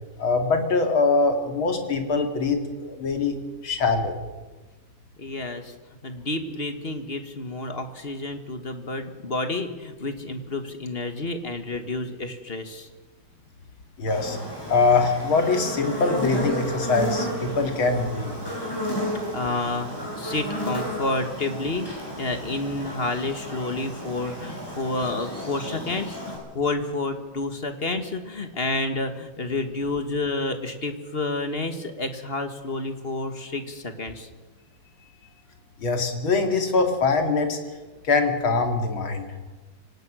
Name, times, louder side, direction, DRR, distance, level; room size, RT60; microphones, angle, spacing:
voice 1, 0.2-3.4 3.6-4.2 14.0-14.4 14.7-18.3 35.8-37.6 38.0-39.3, left 4 dB, 85° left, 5 dB, 3.3 m, -23 dB
voice 2, 5.2-5.7 6.0-12.9 19.0-34.3, left 2 dB, 30° left, 8 dB, 1.7 m, -30 dB
Buzz, 14.1-26.4, equal, 10° left, 7.9 m, -32 dB
25.0 x 18.0 x 6.3 m, 1.2 s
omnidirectional pair, 2.2 m